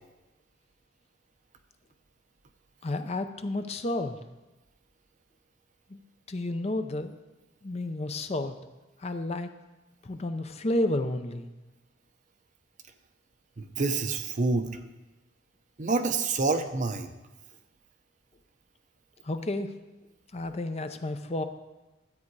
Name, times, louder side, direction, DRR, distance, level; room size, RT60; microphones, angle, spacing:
voice 1, 2.8-4.2 5.9-6.0 6.3-7.2 7.6-8.5 9.0-9.5 10.0-11.5 19.2-19.7 20.3-21.4, left 1 dB, 35° left, 8 dB, 0.6 m, -31 dB
voice 2, 13.6-14.7 15.8-17.1, right 3 dB, 40° right, 7 dB, 0.8 m, -27 dB
13.0 x 8.5 x 4.7 m, 1.1 s
head